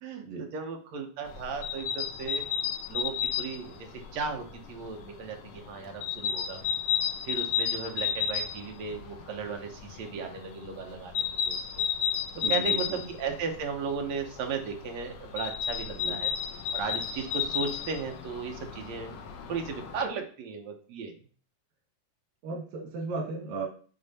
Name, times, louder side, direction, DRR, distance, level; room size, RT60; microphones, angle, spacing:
voice 1, 0.0-2.5 2.9-6.6 7.2-11.9 12.5-16.3 16.7-19.2 19.5-21.1, right 5 dB, 65° right, 3 dB, 1.9 m, -36 dB
sound 1, 1.3-20.1, left 8 dB, 65° left, 1.8 m, -33 dB
voice 2, 12.4-13.0 15.9-16.2 22.4-23.7, right 4 dB, 90° right, -1 dB, 3.3 m, -35 dB
8.7 x 4.7 x 4.2 m, 0.43 s
omnidirectional pair, 3.9 m